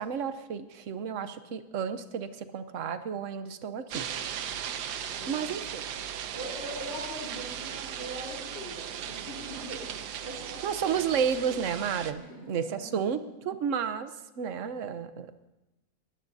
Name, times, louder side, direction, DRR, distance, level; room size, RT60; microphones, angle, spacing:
voice 1, 0.0-4.1 5.3-5.8 10.6-15.5, right 7 dB, 55° right, 10 dB, 1.1 m, -32 dB
sound 1, 3.9-12.1, right 9 dB, 90° right, 1.4 m, -37 dB
voice 2, 4.9-5.5 6.3-11.1 12.2-12.9, equal, 45° left, -7 dB, 4.2 m, -42 dB
21.0 x 15.0 x 2.8 m, 1.0 s
omnidirectional pair, 1.7 m